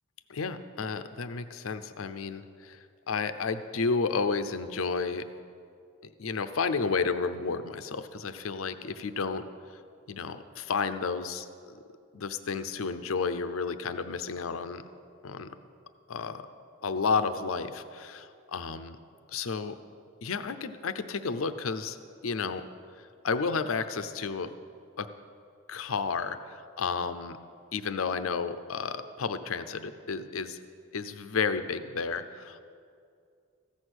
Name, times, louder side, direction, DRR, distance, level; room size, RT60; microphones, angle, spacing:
voice 1, 0.3-5.3 6.0-9.4 10.1-11.8 12.1-14.8 15.2-15.5 16.1-16.4 16.8-19.0 19.3-19.8 20.2-22.0 22.2-22.6 23.0-24.5 25.0-25.1 25.7-27.4 27.7-30.6 30.9-32.6, left 5 dB, 90° left, 11 dB, 0.6 m, -32 dB
14.5 x 6.4 x 7.9 m, 2.3 s
head